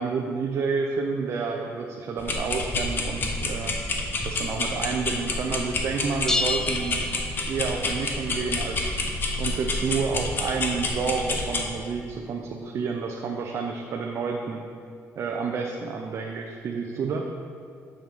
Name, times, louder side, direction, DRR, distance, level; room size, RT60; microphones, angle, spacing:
voice 1, 0.0-3.7 4.2-7.1 7.5-8.9 9.4-14.6 15.2-17.2, right 5 dB, 55° right, 1 dB, 0.6 m, -29 dB
sound 1, 2.2-11.6, left 2 dB, 40° left, 0.9 m, -29 dB
sound 2, 6.3-7.9, left 2 dB, 10° left, 0.4 m, -29 dB
7.0 x 6.2 x 5.4 m, 2.3 s
cardioid pair, 140°, 6 cm